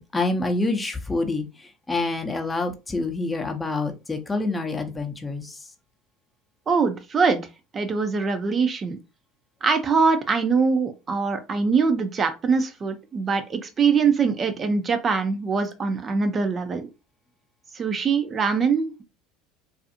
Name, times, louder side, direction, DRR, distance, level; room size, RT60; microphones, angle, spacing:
voice 1, 0.0-1.4 1.9-5.6, left 2 dB, 20° left, 4 dB, 0.6 m, -27 dB
voice 2, 6.7-7.4 7.7-9.0 9.6-16.9 17.7-19.0, right 5 dB, 35° right, 8 dB, 0.4 m, -23 dB
2.5 x 2.3 x 2.6 m, 0.28 s
hypercardioid pair, 75°, 0 cm